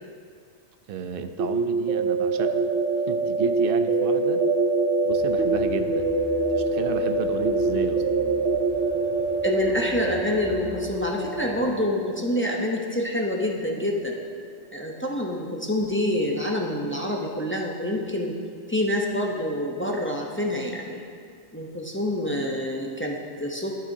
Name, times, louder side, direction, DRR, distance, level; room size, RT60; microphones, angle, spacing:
voice 1, 0.9-2.7 3.1-4.4 5.0-6.2 6.5-8.4, right 6 dB, 65° right, 8 dB, 0.7 m, -33 dB
sound 1, 1.4-13.1, right 3 dB, 80° right, 1.0 m, -25 dB
sound 2, 5.1-11.7, left 2 dB, 85° left, 2.9 m, -42 dB
voice 2, 9.4-14.1 14.7-18.4 18.7-21.0 21.5-23.8, left 1 dB, 15° left, -1 dB, 0.6 m, -27 dB
12.0 x 8.7 x 2.7 m, 2.1 s
omnidirectional pair, 1.2 m